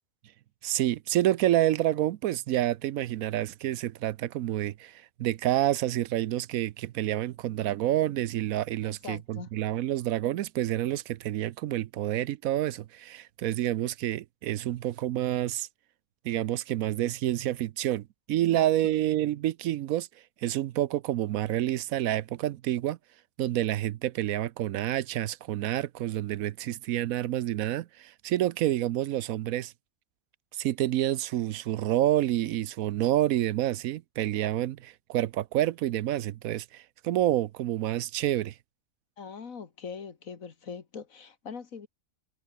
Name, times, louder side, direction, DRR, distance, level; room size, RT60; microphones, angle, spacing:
voice 1, 0.6-15.7 16.2-20.1 20.4-23.0 23.4-29.7 30.5-38.6, right 13 dB, 80° right, 1.1 m, -28 dB
voice 2, 8.8-9.5 18.5-18.9 39.2-41.9, left 6 dB, 70° left, 2.2 m, -42 dB
omnidirectional pair, 1.5 m